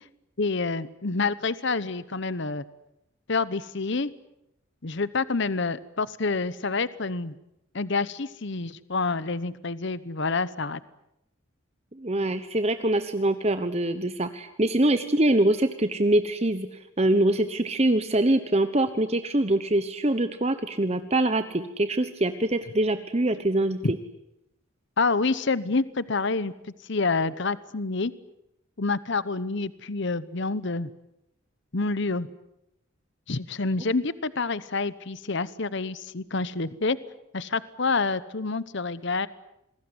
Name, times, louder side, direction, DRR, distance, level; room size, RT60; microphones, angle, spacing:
voice 1, 0.4-2.6 3.3-4.1 4.8-7.3 7.7-10.8 23.8-23.9 25.0-26.5 26.9-28.1 28.8-30.9 31.7-32.3 33.3-37.0 37.3-39.3, left 3 dB, 55° left, 17 dB, 0.9 m, -27 dB
voice 2, 12.0-24.0, right 1 dB, 30° right, 10 dB, 1.0 m, -24 dB
27.5 x 21.0 x 9.7 m, 0.83 s
head